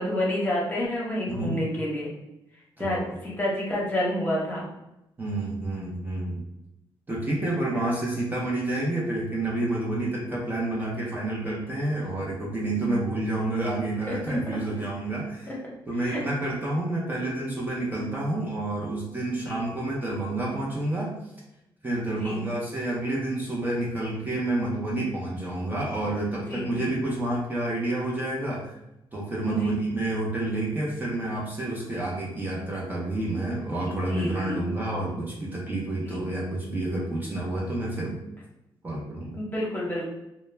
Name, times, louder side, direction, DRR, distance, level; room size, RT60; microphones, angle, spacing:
voice 1, 0.0-2.1 2.8-4.7 14.1-14.2 15.5-15.6 16.0-16.2 19.5-19.6 22.2-22.4 26.5-26.9 29.4-29.7 33.9-34.6 36.0-36.2 39.4-40.1, left 1 dB, 20° left, -4 dB, 0.9 m, -29 dB
voice 2, 1.3-1.6 2.8-3.1 5.2-6.4 7.1-15.5 15.9-21.1 21.8-28.7 29.1-38.2 38.8-39.4, right 2 dB, 20° right, -4 dB, 0.6 m, -29 dB
2.2 x 2.0 x 3.2 m, 0.90 s
cardioid pair, 90°, 9 cm